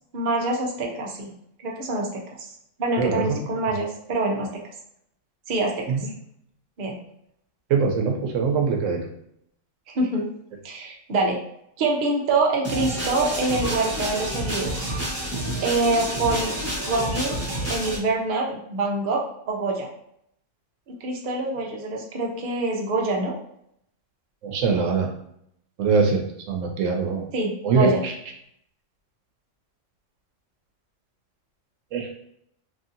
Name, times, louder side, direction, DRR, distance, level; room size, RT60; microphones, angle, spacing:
voice 1, 0.1-1.3 1.6-2.5 2.8-4.5 5.5-5.8 6.8-7.0 9.9-10.3 10.6-11.4 11.8-14.9 15.6-16.6 16.8-19.9 20.9-23.3 27.3-28.0, right 2 dB, 50° right, -1 dB, 0.7 m, -25 dB
voice 2, 3.0-3.4 5.9-6.1 7.7-9.0 24.4-25.1 25.8-27.3 27.6-28.1 31.9-32.1, right 5 dB, 80° right, 2 dB, 1.0 m, -22 dB
sound 1, 12.6-18.0, right 1 dB, 15° right, 1.0 m, -29 dB
3.0 x 2.7 x 2.5 m, 0.73 s
omnidirectional pair, 1.3 m